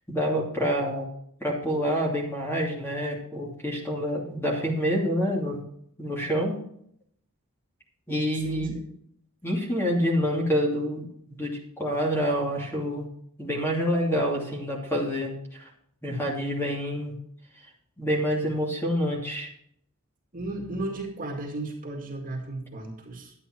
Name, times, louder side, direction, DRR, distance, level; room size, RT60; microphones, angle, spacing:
voice 1, 0.1-1.1 1.4-5.6 6.0-6.6 8.1-8.7 9.4-13.1 13.4-15.7 16.0-17.1 18.0-19.5, equal, 10° left, -2 dB, 2.8 m, -27 dB
voice 2, 20.3-23.3, right 1 dB, 40° right, 1 dB, 2.3 m, -34 dB
11.5 x 9.5 x 4.5 m, 0.69 s
head